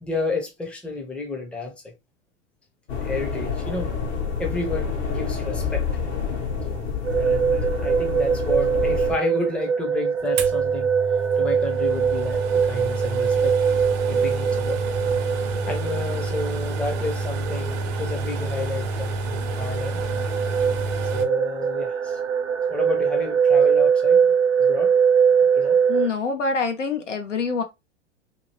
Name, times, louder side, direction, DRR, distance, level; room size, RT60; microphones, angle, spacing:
voice 1, 0.0-1.9 2.9-3.9 4.4-5.9 7.2-10.9 11.4-13.5 14.1-14.8 15.7-20.0 21.1-22.2 22.7-24.9 25.5-25.8, left 2 dB, 5° left, 0.6 m, -31 dB
sound 1, 2.9-9.2, left 5 dB, 65° left, 1.2 m, -28 dB
sound 2, 7.0-26.1, right 7 dB, 75° right, 0.7 m, -23 dB
sound 3, 10.4-21.3, right 2 dB, 40° right, 0.6 m, -29 dB
voice 2, 25.9-27.6, left 4 dB, 80° left, 0.8 m, -25 dB
2.7 x 2.6 x 2.9 m
figure-of-eight pair, 95°, 36 cm